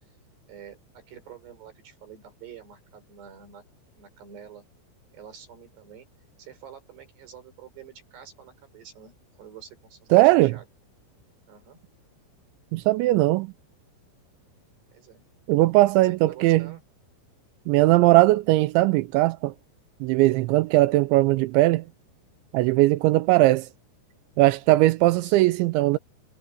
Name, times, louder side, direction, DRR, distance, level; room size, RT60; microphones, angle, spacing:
voice 1, 0.5-3.6 4.0-4.6 5.1-6.1 6.4-10.7 11.5-11.8 14.9-15.2 15.9-16.8 25.1-25.4, right 8 dB, 55° right, 6.4 m, -47 dB
voice 2, 10.1-10.5 12.7-13.5 15.5-16.7 17.7-19.5 20.0-21.8 22.5-23.7 24.4-26.0, right 18 dB, 90° right, 2.6 m, -19 dB
omnidirectional pair, 5.9 m